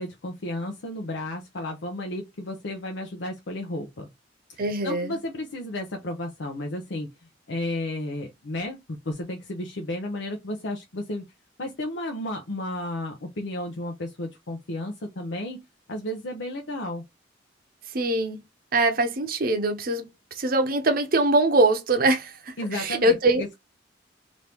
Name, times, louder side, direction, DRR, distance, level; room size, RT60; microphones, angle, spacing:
voice 1, 0.0-4.1 4.5-7.1 7.5-11.2 11.6-17.0 22.6-23.5, left 1 dB, 80° left, 0.7 m, -33 dB
voice 2, 4.6-5.2 17.9-18.4 18.7-20.1 20.4-23.5, right 2 dB, 50° right, 0.7 m, -23 dB
2.9 x 2.6 x 3.4 m
head